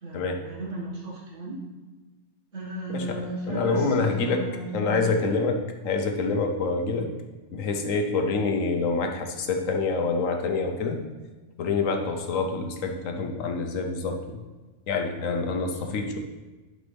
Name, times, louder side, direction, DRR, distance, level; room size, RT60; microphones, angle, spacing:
voice 1, 0.0-1.6 2.5-5.0 15.7-15.8, right 1 dB, 70° right, -4 dB, 2.1 m, -35 dB
voice 2, 2.9-4.4 4.7-7.1 7.5-11.0 11.6-14.4 14.9-16.2, left 4 dB, 90° left, 4 dB, 1.3 m, -26 dB
11.0 x 5.1 x 3.4 m, 1.2 s
omnidirectional pair, 1.3 m